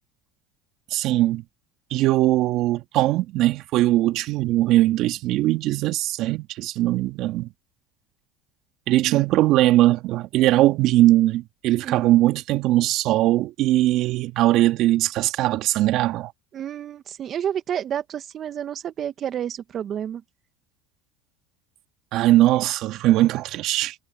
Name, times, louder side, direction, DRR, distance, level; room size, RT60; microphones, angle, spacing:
voice 1, 0.9-1.4 1.9-7.5 8.9-16.3 22.1-23.9, right 15 dB, 60° right, 2.0 m, -20 dB
voice 2, 11.8-12.2 16.5-20.2, right 9 dB, 45° right, 1.9 m, -30 dB
hypercardioid pair, 85°, 0 cm